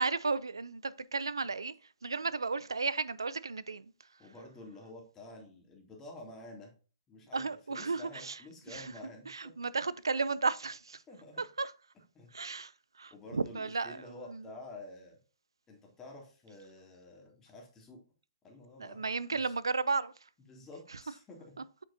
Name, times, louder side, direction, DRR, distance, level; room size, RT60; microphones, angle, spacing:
voice 1, 0.0-1.7 2.0-3.9 7.3-8.4 8.7-8.9 9.3-11.0 11.4-11.7 12.3-12.7 13.0-14.4 18.8-20.1, right 4 dB, 85° right, 0.5 m, -34 dB
voice 2, 4.2-6.7 7.1-7.4 7.7-9.5 11.1-11.4 12.1-12.3 13.1-15.2 15.7-18.0 18.4-19.5 20.4-21.5, left 2 dB, 20° left, 2.7 m, -50 dB
8.3 x 5.9 x 2.7 m
figure-of-eight pair, 125°, 2 cm